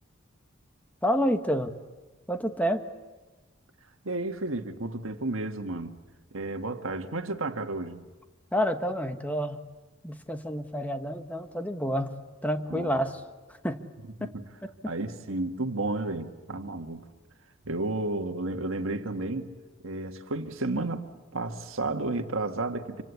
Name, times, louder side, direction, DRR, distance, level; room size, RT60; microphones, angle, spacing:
voice 1, 1.0-1.7 2.3-2.9 8.5-9.6 10.0-12.2 12.4-13.2 13.6-13.8 14.6-14.7, equal, 10° left, 1.3 m, -28 dB
voice 2, 4.0-6.0 6.3-8.0 12.7-12.9 14.2-14.4 14.8-17.0 17.6-19.5 19.8-21.1 21.3-23.0, right 2 dB, 80° right, 1.7 m, -32 dB
27.5 x 25.5 x 8.4 m
head